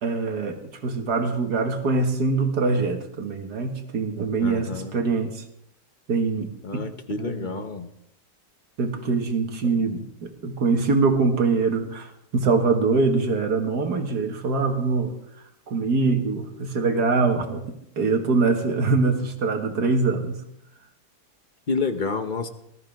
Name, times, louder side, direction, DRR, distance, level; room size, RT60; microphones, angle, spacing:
voice 1, 0.0-5.4 6.1-6.8 7.2-7.5 8.8-15.2 15.7-17.6 18.0-20.4, right 4 dB, 75° right, 5 dB, 2.2 m, -23 dB
voice 2, 4.4-4.9 6.6-7.9 21.7-22.5, left 4 dB, 35° left, 8 dB, 0.9 m, -29 dB
19.5 x 13.5 x 3.6 m, 0.76 s
omnidirectional pair, 1.7 m